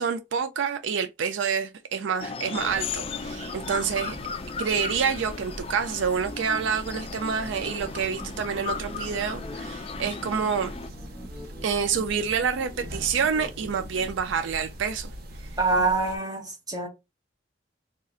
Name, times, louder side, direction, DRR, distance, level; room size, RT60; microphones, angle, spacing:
voice 1, 0.0-4.2 4.6-10.7 11.6-15.1, right 6 dB, 80° right, 0.4 m, -27 dB
sound 1, 2.2-10.9, left 5 dB, 30° left, 0.4 m, -36 dB
sound 2, 2.6-16.2, equal, 55° right, 0.9 m, -42 dB
sound 3, 7.5-14.2, equal, ahead, 0.7 m, -45 dB
voice 2, 15.6-16.9, right 3 dB, 20° right, 1.2 m, -25 dB
3.6 x 2.4 x 4.2 m
head